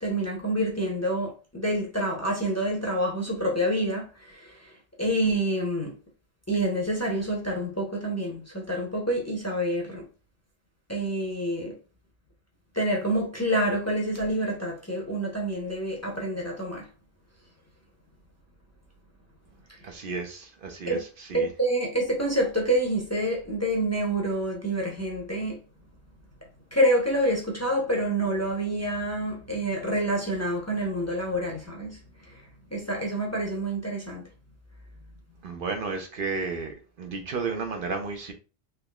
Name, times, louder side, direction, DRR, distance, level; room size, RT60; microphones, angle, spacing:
voice 1, 0.0-5.9 6.5-10.1 10.9-11.8 12.7-16.9 20.9-21.0 21.3-25.6 26.7-32.0 32.3-32.4 32.7-34.3, right 1 dB, 15° left, 0.7 m, -27 dB
voice 2, 19.8-21.5 35.4-38.3, right 4 dB, 60° right, 0.8 m, -33 dB
3.5 x 3.0 x 2.3 m
omnidirectional pair, 1.1 m